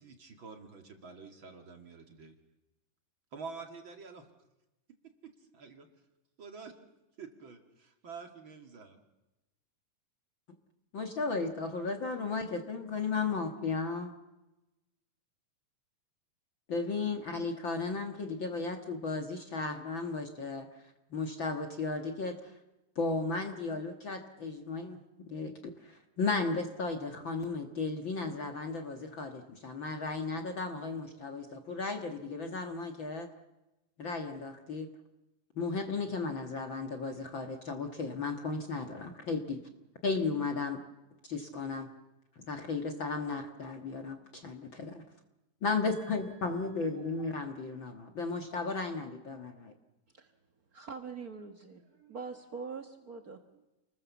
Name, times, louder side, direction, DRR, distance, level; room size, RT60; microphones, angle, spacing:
voice 1, 0.0-2.4 3.3-4.3 5.2-5.9 6.4-6.7 7.2-9.0, right 5 dB, 40° right, 5 dB, 2.6 m, -47 dB
voice 2, 10.9-14.1 16.7-20.7 21.1-22.4 23.0-25.0 25.3-33.3 34.0-34.9 35.6-39.6 40.0-40.8 41.2-41.9 42.4-45.0 45.6-49.7, left 4 dB, 45° left, 5 dB, 1.8 m, -35 dB
voice 3, 45.9-46.5 50.1-50.3 50.7-53.7, right 5 dB, 75° right, 6 dB, 0.8 m, -44 dB
29.5 x 20.5 x 7.2 m, 0.99 s
omnidirectional pair, 3.9 m